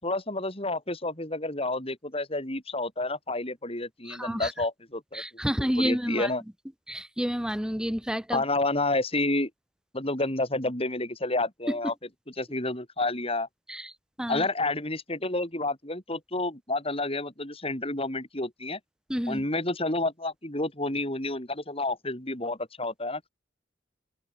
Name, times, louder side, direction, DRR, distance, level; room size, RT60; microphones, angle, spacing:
voice 1, 0.0-5.2 5.8-6.4 8.3-9.5 9.9-11.9 12.4-13.5 14.3-18.8 19.3-23.3, left 2 dB, 30° left, 7.2 m, -30 dB
voice 2, 4.0-4.5 5.1-6.3 6.9-8.4 13.7-13.9 14.2-14.5 19.1-19.4, equal, 5° right, 1.5 m, -29 dB
open air
head